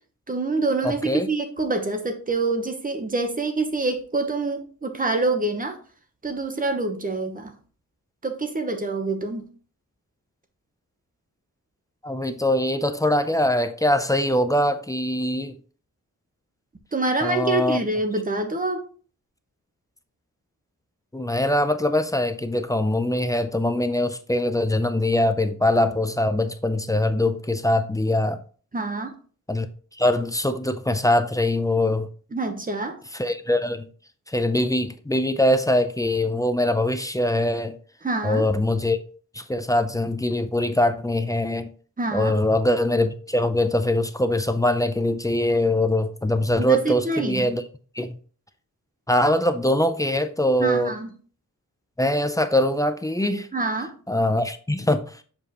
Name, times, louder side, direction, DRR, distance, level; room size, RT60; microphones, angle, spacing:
voice 1, 0.3-5.8 6.2-7.5 8.2-9.4 16.9-18.8 28.7-29.1 32.3-33.0 38.0-38.5 42.0-42.4 46.6-47.5 50.6-51.1 53.5-53.9, right 3 dB, 25° right, 0.9 m, -26 dB
voice 2, 0.8-1.3 12.0-15.6 17.2-17.8 21.1-28.4 29.5-29.7 30.0-32.1 33.1-33.9 34.3-37.8 38.2-39.0 39.3-41.7 42.1-47.6 48.0-48.2 49.1-50.9 52.0-53.5 54.1-55.1, left 1 dB, 10° left, 0.4 m, -22 dB
7.2 x 5.0 x 2.9 m
wide cardioid pair, 170°, 33 cm